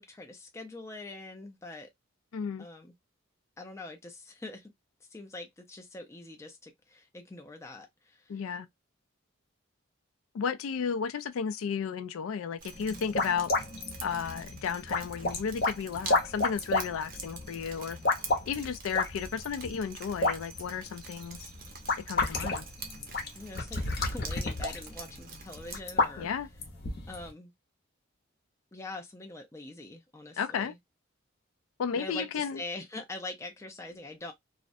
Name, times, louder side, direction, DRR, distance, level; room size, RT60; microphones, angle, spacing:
voice 1, 0.0-1.9 2.6-2.9 3.6-4.7 5.1-8.4 23.3-26.3 27.1-27.5 28.7-30.8 32.0-34.3, left 2 dB, 15° left, 0.4 m, -43 dB
voice 2, 2.3-2.6 8.3-8.7 10.3-13.5 14.0-18.0 18.5-21.5 22.1-22.6 26.2-26.5 30.4-30.7 31.8-32.6, left 6 dB, 80° left, 0.4 m, -33 dB
Drip, 12.6-25.8, right 5 dB, 40° right, 0.5 m, -47 dB
sound 1, 12.7-27.3, left 3 dB, 50° left, 0.7 m, -32 dB
2.5 x 2.0 x 2.5 m
head